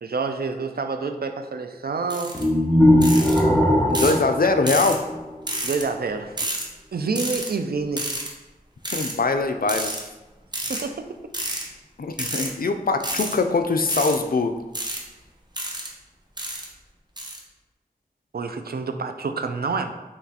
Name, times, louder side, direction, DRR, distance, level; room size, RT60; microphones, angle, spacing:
voice 1, 0.0-2.4 5.6-6.4 6.9-8.1 10.7-11.3 18.3-19.9, right 4 dB, 80° right, 7 dB, 0.4 m, -28 dB
sound 1, 2.1-2.4 3.0-3.4 3.9-4.2 4.7-5.0 5.5-5.8 6.4-6.7 7.2-7.5 8.0-8.3 8.8-9.1 9.7-10.0 10.5-10.8 11.3-11.6 12.1-12.5 13.0-13.4 13.9-14.2 14.7-15.0 15.6-15.9 16.4-16.7 17.2-17.4, right 1 dB, 30° right, 0.8 m, -29 dB
sound 2, 2.3-5.5, left 1 dB, 10° left, 1.0 m, -19 dB
voice 2, 3.9-5.0 8.9-9.9 12.0-14.6, left 3 dB, 70° left, 7 dB, 0.4 m, -22 dB
5.9 x 3.1 x 2.8 m, 1.1 s
wide cardioid pair, 45°, 16 cm